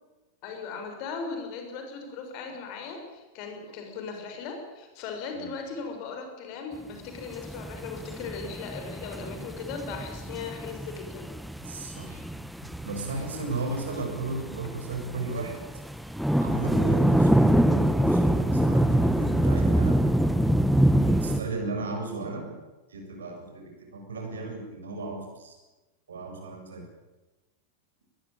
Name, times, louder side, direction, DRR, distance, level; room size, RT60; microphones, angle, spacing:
voice 1, 0.4-11.3, left 5 dB, 45° left, 4 dB, 6.5 m, -38 dB
sound 1, 7.2-21.4, right 1 dB, ahead, 1.7 m, -25 dB
voice 2, 11.6-12.2 12.8-15.6 16.4-20.0 20.4-20.5 20.9-22.5 22.9-25.5 26.1-26.8, right 2 dB, 65° right, 3 dB, 7.6 m, -35 dB
21.5 x 21.0 x 9.1 m, 1.1 s
figure-of-eight pair, 90°, 0 cm